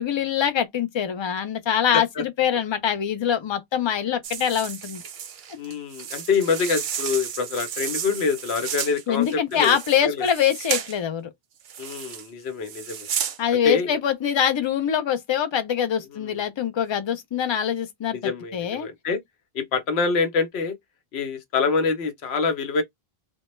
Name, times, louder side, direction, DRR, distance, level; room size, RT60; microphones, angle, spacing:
voice 1, 0.0-5.0 9.1-11.3 13.4-18.2 18.5-18.9, left 9 dB, 50° left, 0.3 m, -24 dB
voice 2, 1.9-2.2 5.6-9.8 10.0-10.3 11.8-13.1 13.5-13.9 16.1-16.4 18.1-19.2 19.5-20.8 21.1-22.8, left 5 dB, 85° left, 1.0 m, -26 dB
sound 1, 4.2-10.9 11.6-12.3 12.6-13.4, right 8 dB, 60° right, 0.6 m, -32 dB
2.2 x 2.0 x 3.0 m
omnidirectional pair, 1.0 m